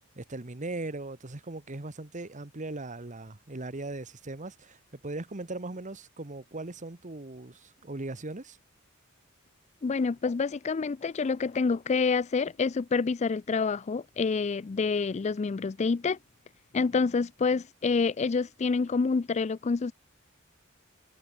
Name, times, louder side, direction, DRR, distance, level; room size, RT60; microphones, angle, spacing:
voice 1, 0.0-8.6, right 2 dB, 35° right, 1.2 m, -39 dB
voice 2, 9.8-16.2 16.7-19.9, left 4 dB, 30° left, 0.4 m, -27 dB
head